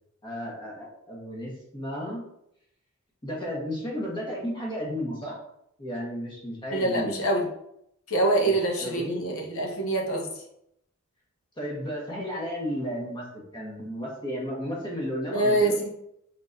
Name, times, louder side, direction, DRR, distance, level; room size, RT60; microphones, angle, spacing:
voice 1, 0.2-2.2 3.2-5.3 5.8-7.2 8.4-8.5 8.8-9.3 11.6-15.7, equal, 25° left, -4 dB, 1.3 m, -33 dB
voice 2, 6.7-7.5 8.1-10.3 15.3-15.9, right 2 dB, 80° left, 1 dB, 0.9 m, -25 dB
3.8 x 3.7 x 2.6 m, 0.77 s
head